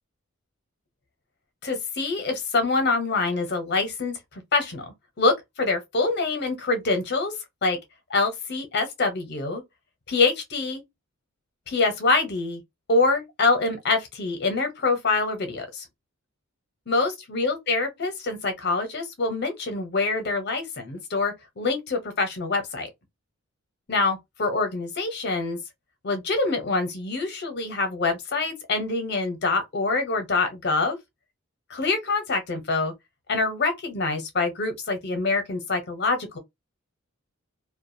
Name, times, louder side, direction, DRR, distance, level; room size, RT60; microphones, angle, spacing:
voice 1, 1.6-4.9 5.2-7.3 7.6-7.8 8.1-9.6 10.1-10.8 11.7-12.6 12.9-15.9 16.9-22.9 23.9-25.6 26.0-31.0 31.7-32.9 33.3-36.4, left 3 dB, 50° left, 0.8 m, -25 dB
2.4 x 2.2 x 2.6 m
head